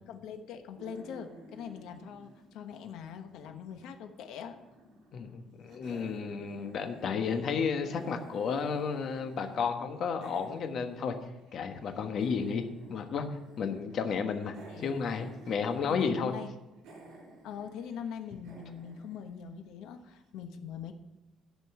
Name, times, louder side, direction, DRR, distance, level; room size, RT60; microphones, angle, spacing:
voice 1, 0.1-4.6 14.7-14.9 15.9-16.5 17.4-20.9, left 7 dB, 75° left, 6 dB, 1.1 m, -42 dB
sound 1, 0.8-3.8 4.1-5.4 5.7-9.6 9.9-20.0, right 2 dB, 85° right, 3.9 m, -53 dB
voice 2, 5.1-11.1 11.5-12.6 12.9-13.3 13.6-16.3, left 6 dB, 50° left, 6 dB, 1.2 m, -32 dB
11.5 x 5.3 x 7.6 m, 0.99 s
cardioid pair, 150°, 0 cm